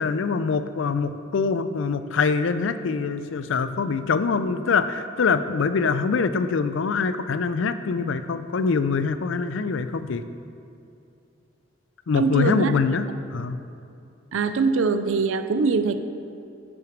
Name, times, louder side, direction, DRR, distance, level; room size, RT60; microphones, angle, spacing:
voice 1, 0.0-10.2 12.1-13.6, left 5 dB, 70° left, 11 dB, 0.4 m, -24 dB
voice 2, 12.2-12.7 14.3-16.0, right 4 dB, 85° right, 10 dB, 0.5 m, -22 dB
9.0 x 6.1 x 5.1 m, 2.6 s
head